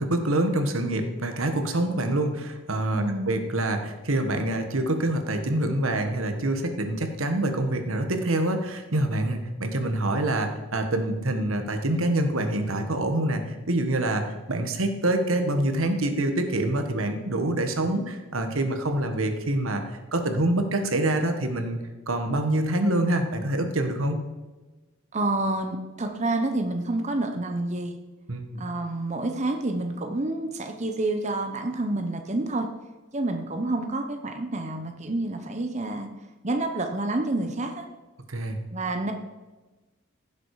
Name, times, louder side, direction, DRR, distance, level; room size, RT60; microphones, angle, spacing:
voice 1, 0.0-21.8 22.1-24.2 28.3-28.6 38.3-38.6, right 1 dB, 85° right, 6 dB, 1.5 m, -26 dB
voice 2, 2.9-3.3 25.1-28.0 28.6-32.7 33.1-36.1 36.4-37.9 38.7-39.1, right 2 dB, 35° right, 5 dB, 1.0 m, -28 dB
16.0 x 7.5 x 4.9 m, 1.2 s
head